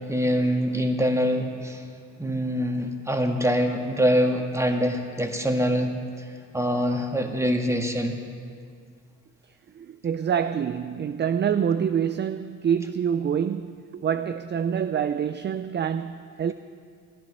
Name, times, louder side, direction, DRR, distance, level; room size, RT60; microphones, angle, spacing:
voice 1, 0.1-1.8 2.2-5.9 6.5-8.2, equal, 10° right, 1.6 m, -24 dB
voice 2, 9.7-16.5, right 8 dB, 30° right, 0.4 m, -26 dB
14.0 x 10.5 x 6.6 m
supercardioid pair, 70°, 35 cm